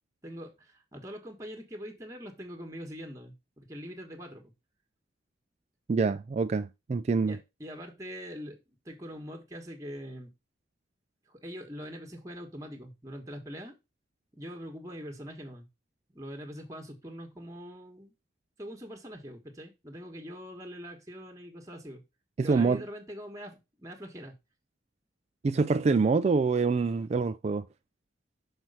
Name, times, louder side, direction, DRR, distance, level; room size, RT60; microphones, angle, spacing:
voice 1, 0.2-4.4 7.3-10.3 11.3-13.8 14.4-15.7 16.1-18.1 18.6-22.0 22.4-24.3, equal, 20° right, 1.3 m, -43 dB
voice 2, 5.9-7.4 22.4-22.8 25.4-27.6, right 4 dB, 35° right, 0.3 m, -26 dB
6.2 x 4.5 x 5.4 m
head